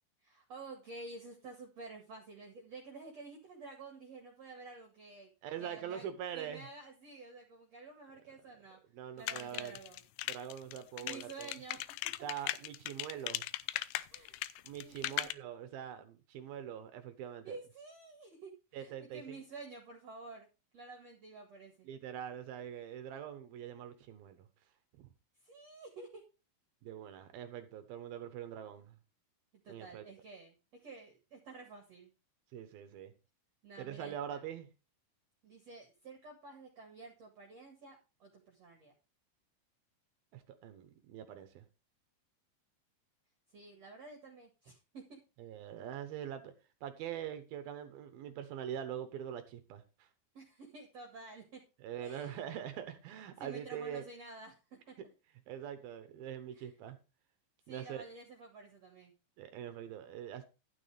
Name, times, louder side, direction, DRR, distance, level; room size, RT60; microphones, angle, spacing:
voice 1, 0.2-5.3 5.6-6.1 6.3-8.8 9.2-10.0 11.0-11.8 14.1-14.4 14.8-15.3 17.4-20.5 20.7-21.9 25.4-26.2 29.6-32.1 33.6-34.4 35.4-38.9 43.5-45.2 50.3-51.6 52.0-52.4 53.4-55.0 56.5-56.7 57.7-59.1, right 3 dB, 50° right, 2.1 m, -51 dB
voice 2, 5.4-6.6 8.9-9.8 10.3-11.5 12.2-13.4 14.6-17.6 18.7-19.4 21.8-24.5 25.0-25.1 26.8-29.0 29.7-30.1 32.5-33.1 33.8-34.7 40.3-41.7 45.4-46.5 46.8-50.1 51.8-54.1 55.5-57.0 57.7-58.0 59.4-60.4, right 9 dB, 75° right, 2.2 m, -43 dB
sound 1, 9.3-15.3, left 16 dB, 80° left, 2.9 m, -38 dB
12.0 x 9.7 x 3.4 m
omnidirectional pair, 5.6 m